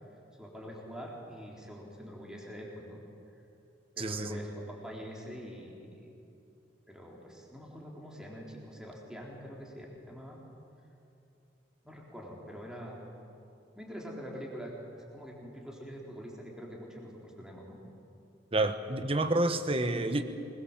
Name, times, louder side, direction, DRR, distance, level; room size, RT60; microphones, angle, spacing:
voice 1, 0.4-3.0 4.0-6.1 6.9-10.4 11.8-13.0 13.7-14.7 15.1-17.7, equal, 5° right, -2 dB, 4.0 m, -44 dB
voice 2, 4.0-4.4 18.5-20.2, right 2 dB, 30° right, 9 dB, 1.2 m, -29 dB
25.5 x 21.5 x 7.5 m, 2.7 s
head